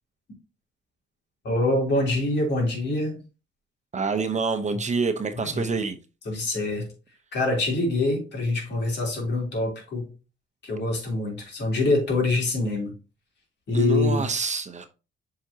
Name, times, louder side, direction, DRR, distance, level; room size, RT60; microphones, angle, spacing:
voice 1, 1.4-3.2 5.3-5.7 6.2-6.9 7.3-10.1 10.6-12.9 13.7-14.3, left 2 dB, 60° left, 3.4 m, -25 dB
voice 2, 3.9-6.0 13.7-14.9, right 4 dB, 35° right, 0.9 m, -27 dB
7.6 x 5.0 x 2.8 m
cardioid pair, 90°, 20 cm